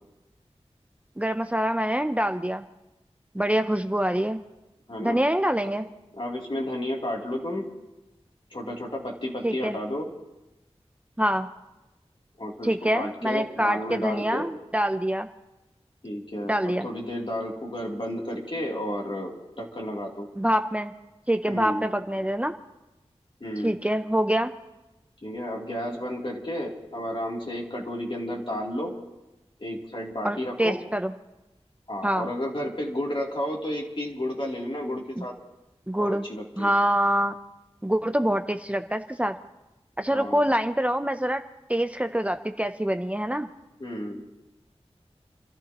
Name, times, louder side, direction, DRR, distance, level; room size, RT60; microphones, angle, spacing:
voice 1, 1.2-2.6 3.3-4.4 5.0-5.9 9.4-9.8 11.2-11.5 12.6-15.3 16.4-16.9 20.4-20.9 21.3-22.5 23.6-24.5 30.2-31.1 32.0-32.3 35.2-35.3 35.9-36.2 36.6-37.4 37.8-39.4 40.0-41.4 41.7-43.5, equal, 10° right, 7 dB, 0.6 m, -25 dB
voice 2, 6.2-7.7 8.5-10.1 12.4-14.5 16.0-20.3 21.5-21.8 23.4-23.8 25.2-28.9 29.6-30.8 31.9-35.3 36.0-36.7 40.1-40.4 43.8-44.2, left 1 dB, 50° left, -2 dB, 3.1 m, -32 dB
30.0 x 13.5 x 3.0 m, 1.0 s
wide cardioid pair, 55°, 11 cm